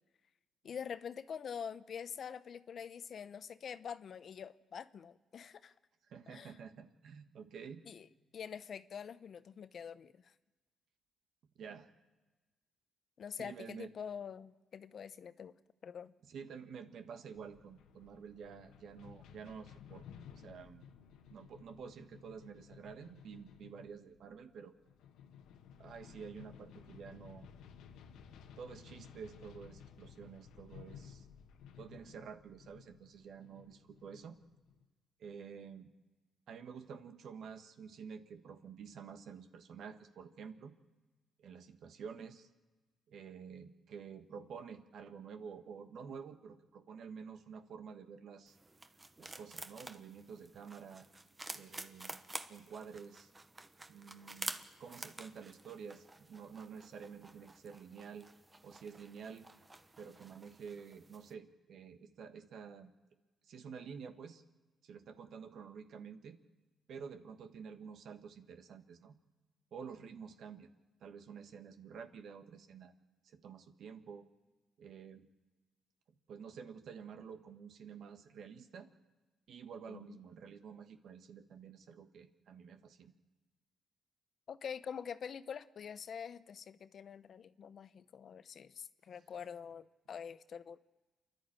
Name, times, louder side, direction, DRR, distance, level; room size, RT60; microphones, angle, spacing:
voice 1, 0.6-5.7 6.3-6.6 7.9-8.1 8.3-10.3 13.2-15.6 15.8-16.1 79.9-80.2 84.5-90.8, left 7 dB, 55° left, 13 dB, 0.8 m, -45 dB
voice 2, 6.1-7.8 11.6-11.9 13.4-13.9 16.3-20.0 20.4-20.8 21.3-24.7 25.8-27.5 28.6-31.3 31.8-34.4 35.2-35.9 36.5-40.7 41.4-42.5 43.1-48.6 49.2-51.1 51.5-52.2 52.5-53.3 53.9-58.3 58.6-59.5 60.0-62.9 63.4-64.4 64.8-66.4 66.9-69.1 69.7-70.7 71.0-72.9 73.2-74.3 74.8-75.3 76.3-78.9 79.5-83.1, right 6 dB, 70° right, 8 dB, 1.6 m, -50 dB
sound 1, 17.3-34.9, left 7 dB, 85° left, 1.3 m, -56 dB
sound 2, 48.5-61.3, right 2 dB, 20° right, 1.1 m, -50 dB
28.5 x 11.5 x 8.9 m, 1.2 s
cardioid pair, 90°, 0 cm